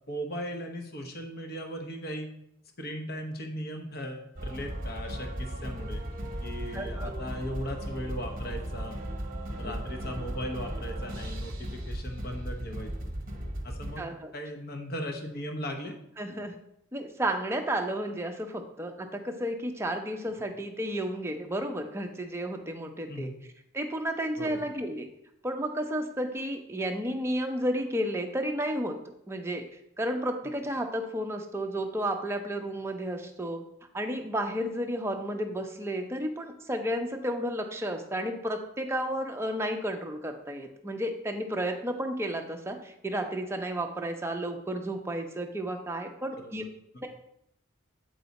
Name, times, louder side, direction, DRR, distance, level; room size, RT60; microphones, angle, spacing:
voice 1, 0.1-2.3 2.8-6.0 6.4-9.0 9.6-12.9 13.6-14.0 14.3-16.0 23.1-23.3 24.4-24.6 46.4-46.5 46.9-47.0, equal, 45° left, 3 dB, 0.9 m, -37 dB
sound 1, 4.4-14.0, right 1 dB, 40° right, 0.9 m, -36 dB
voice 2, 6.7-7.2 9.6-9.7 14.0-14.3 16.2-16.5 16.9-23.3 23.7-25.1 25.4-29.0 29.3-29.6 30.0-33.6 33.9-46.6 47.0-47.1, right 1 dB, 10° right, 4 dB, 0.6 m, -32 dB
7.8 x 4.7 x 4.1 m, 0.77 s
head